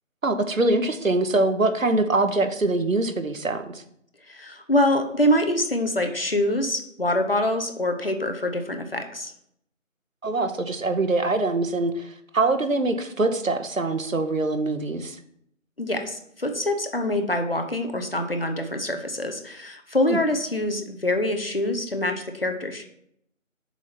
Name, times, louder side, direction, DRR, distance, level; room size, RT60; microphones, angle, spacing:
voice 1, 0.2-3.8 10.2-15.2 20.1-20.2, right 2 dB, 90° right, 8 dB, 1.0 m, -24 dB
voice 2, 4.3-9.3 15.8-22.8, left 1 dB, 45° left, 5 dB, 0.8 m, -25 dB
7.0 x 2.9 x 5.9 m, 0.71 s
figure-of-eight pair, 180°, 39 cm